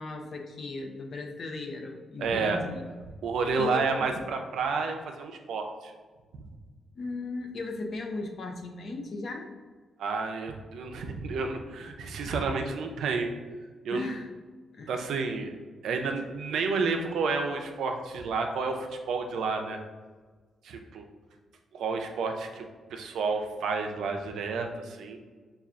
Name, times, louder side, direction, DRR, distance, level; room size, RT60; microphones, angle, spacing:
voice 1, 0.0-2.8 3.6-4.1 6.9-9.5 13.9-14.3 14.7-14.9, left 3 dB, 55° left, 3 dB, 0.5 m, -37 dB
voice 2, 2.2-2.6 3.2-5.9 6.4-6.5 10.0-13.3 13.8-14.1 14.9-15.5 15.8-19.8 20.6-21.1 21.7-25.2, right 4 dB, 85° right, 4 dB, 0.4 m, -30 dB
5.5 x 2.3 x 2.4 m, 1.4 s
cardioid pair, 95°, 0 cm